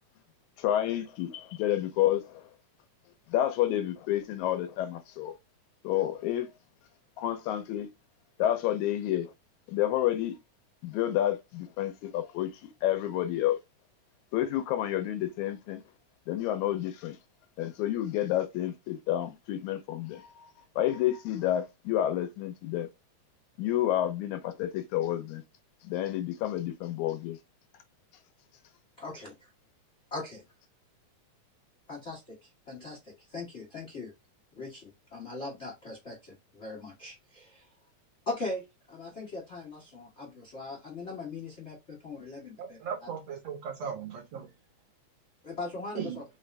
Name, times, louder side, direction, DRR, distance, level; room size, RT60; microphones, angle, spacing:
voice 1, 0.6-2.5 3.3-5.3 5.8-6.5 7.2-7.9 8.4-9.3 9.7-10.4 10.8-12.5 12.8-13.6 14.3-15.8 16.3-17.2 17.6-20.5 20.8-22.9 23.6-25.4 25.8-27.4, left 12 dB, 80° left, 1.9 m, -29 dB
voice 2, 29.0-29.5 30.1-30.4 31.9-34.1 34.6-37.7 38.3-42.8 45.4-46.2, left 3 dB, 60° left, 0.7 m, -40 dB
voice 3, 42.6-44.5 45.9-46.2, right 7 dB, 65° right, 1.8 m, -37 dB
5.1 x 2.5 x 3.2 m
omnidirectional pair, 3.6 m